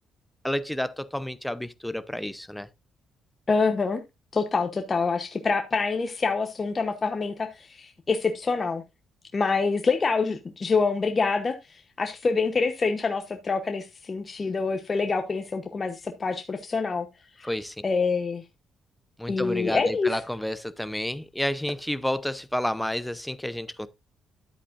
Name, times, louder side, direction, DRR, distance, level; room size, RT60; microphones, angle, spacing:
voice 1, 0.4-2.7 17.4-17.8 19.2-23.9, left 1 dB, 5° left, 0.7 m, -30 dB
voice 2, 3.5-4.0 4.3-8.8 9.3-17.1 17.4-17.5 17.8-18.4 19.3-20.2, left 4 dB, 35° left, 1.0 m, -26 dB
10.5 x 8.3 x 2.6 m
cardioid pair, 90°, 0 cm